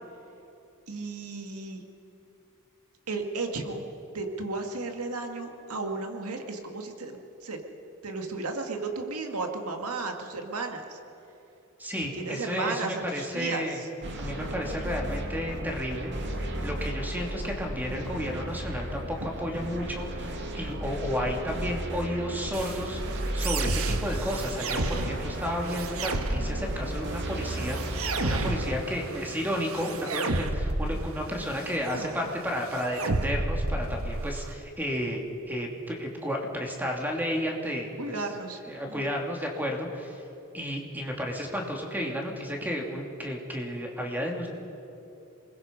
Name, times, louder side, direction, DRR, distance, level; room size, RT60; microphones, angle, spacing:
voice 1, 0.9-1.8 3.1-3.8 4.1-7.6 8.0-11.0 12.1-13.9 38.0-38.6 38.9-39.1, right 3 dB, 90° right, 4 dB, 2.1 m, -34 dB
voice 2, 11.8-13.8 14.2-16.1 16.6-38.1 38.7-40.2 40.5-44.5, equal, 10° right, 1 dB, 2.8 m, -32 dB
sound 1, 14.0-28.7, right 1 dB, 55° right, 2.3 m, -34 dB
sound 2, 22.5-34.5, right 2 dB, 70° right, 1.3 m, -32 dB
27.0 x 21.0 x 5.4 m, 3.0 s
head